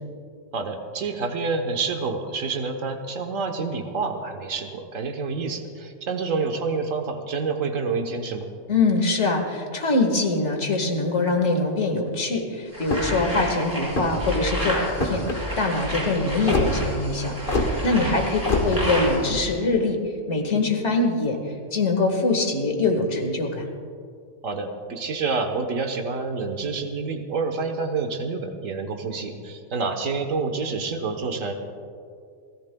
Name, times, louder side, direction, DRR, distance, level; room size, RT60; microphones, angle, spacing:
voice 1, 0.5-8.5 17.9-18.2 24.4-31.5, right 4 dB, 80° right, 5 dB, 1.5 m, -28 dB
voice 2, 8.7-20.0 20.3-21.4 21.7-23.6, left 3 dB, 60° left, 3 dB, 2.0 m, -23 dB
sound 1, 12.7-19.5, equal, 15° right, 4.4 m, -30 dB
sound 2, 12.8-13.2 13.8-14.3 14.9-15.4 16.5-16.7 17.5-17.7 18.5-18.7, left 2 dB, 45° left, 1.8 m, -24 dB
29.0 x 14.5 x 2.3 m, 2.3 s
omnidirectional pair, 1.3 m